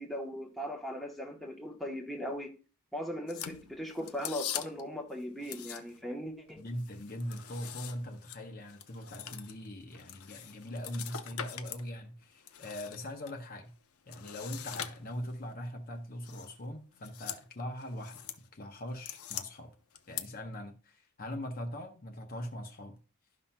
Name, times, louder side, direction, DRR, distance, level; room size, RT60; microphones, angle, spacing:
voice 1, 0.0-2.5 2.9-6.6, equal, ahead, 1.0 m, -39 dB
sound 1, 3.3-4.9 5.4-6.1 6.5-11.9 12.2-13.3 14.1-15.4 16.2-16.5 16.9-17.4 17.8-18.4 18.8-19.4 20.0-20.2, left 10 dB, 90° left, 0.7 m, -43 dB
voice 2, 6.6-13.7 14.1-19.7 20.1-23.0, left 1 dB, 40° left, 0.9 m, -41 dB
12.5 x 5.7 x 2.2 m
head